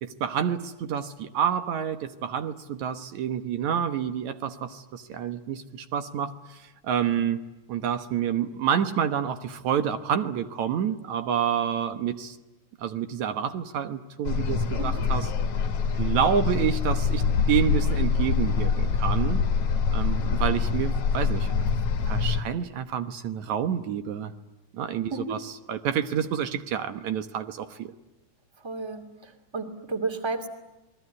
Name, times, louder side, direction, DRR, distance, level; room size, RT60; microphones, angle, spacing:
voice 1, 0.0-7.4 7.7-12.4 12.8-15.3 16.0-19.5 19.9-21.5 22.1-24.3 24.7-27.9, right 8 dB, 75° right, 9 dB, 2.5 m, -28 dB
sound 1, 14.2-22.4, left 5 dB, 60° left, 2.1 m, -25 dB
voice 2, 28.6-30.5, right 3 dB, 10° right, 6 dB, 2.3 m, -32 dB
29.0 x 21.5 x 9.7 m, 1.0 s
omnidirectional pair, 3.4 m